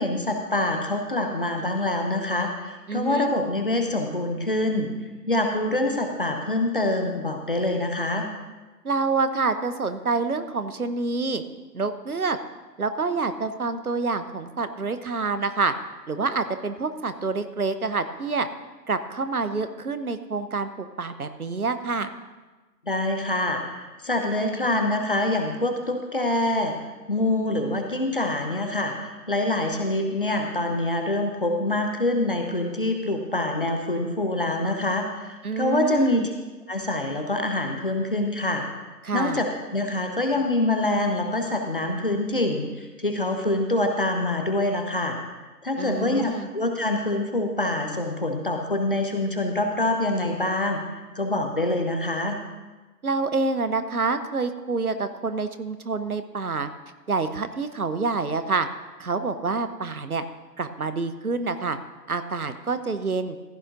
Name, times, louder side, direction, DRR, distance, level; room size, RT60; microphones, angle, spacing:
voice 1, 0.0-4.9 5.3-8.3 22.8-26.7 27.1-36.3 36.7-38.6 39.1-45.2 45.6-50.8 51.1-52.4, left 2 dB, 35° left, 4 dB, 0.9 m, -25 dB
voice 2, 2.9-3.3 8.8-11.4 11.7-12.4 12.8-15.7 16.1-18.5 18.9-22.1 35.4-36.3 39.0-39.4 45.8-46.5 53.0-56.7 57.1-58.7 59.0-60.2 60.6-61.8 62.1-63.4, right 4 dB, 60° right, 11 dB, 0.9 m, -27 dB
15.5 x 11.0 x 2.6 m, 1.2 s
figure-of-eight pair, 155°, 50 cm